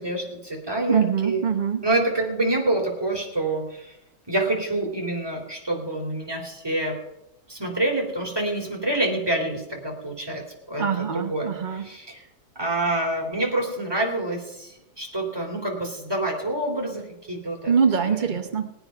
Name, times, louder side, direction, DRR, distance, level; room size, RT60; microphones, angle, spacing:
voice 1, 0.0-1.5 1.8-3.9 4.3-7.0 7.5-12.2 12.5-17.7 18.1-18.2, right 2 dB, 10° right, 0 dB, 3.2 m, -27 dB
voice 2, 0.9-1.8 10.8-11.9 17.7-18.7, right 6 dB, 85° right, 7 dB, 0.4 m, -23 dB
19.5 x 9.2 x 5.7 m, 0.86 s
omnidirectional pair, 2.2 m